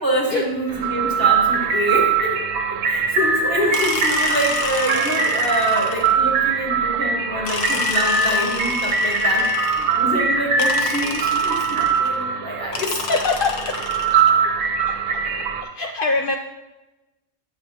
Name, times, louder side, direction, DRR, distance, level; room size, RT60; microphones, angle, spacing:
voice 1, 0.0-13.0 15.2-15.3, equal, 15° right, -2 dB, 1.3 m, -26 dB
sound 1, 0.7-15.6, right 5 dB, 90° right, 1.1 m, -21 dB
sound 2, 3.7-6.3 7.4-10.1 10.6-12.2 12.7-14.4, left 4 dB, 50° left, 0.8 m, -30 dB
voice 2, 13.0-13.8 14.9-15.0 15.6-16.3, left 4 dB, 80° left, 3 dB, 0.4 m, -23 dB
9.7 x 6.8 x 2.9 m, 1.0 s
omnidirectional pair, 1.5 m